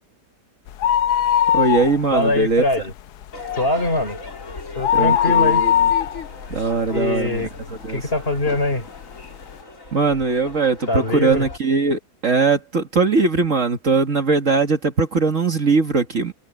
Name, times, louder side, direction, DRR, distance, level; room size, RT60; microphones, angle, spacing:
sound 1, 0.7-2.3 2.6-2.7 3.2-7.6 8.1-8.2 9.0-9.1 9.3-9.4, left 9 dB, 80° left, 1.2 m, -20 dB
voice 1, 1.5-2.6 4.9-5.9 6.5-8.0 9.9-16.3, right 4 dB, 50° right, 2.1 m, -20 dB
voice 2, 2.1-2.9 3.5-4.2 4.8-5.6 6.9-7.5 7.9-8.9 10.9-11.5, left 2 dB, 35° left, 4.0 m, -22 dB
Crowd / Fireworks, 3.3-11.6, left 3 dB, 50° left, 4.1 m, -37 dB
omnidirectional pair, 1.8 m